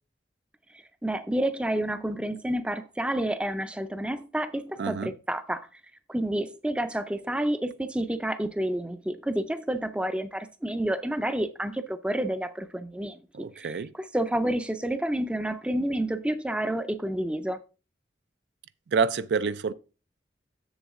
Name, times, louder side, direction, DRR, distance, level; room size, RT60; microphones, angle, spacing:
voice 1, 1.0-5.7 6.1-17.6, right 1 dB, 5° right, 0.4 m, -29 dB
voice 2, 4.8-5.1 13.3-13.9 18.9-19.7, right 5 dB, 80° right, 0.4 m, -27 dB
7.1 x 7.1 x 3.6 m
head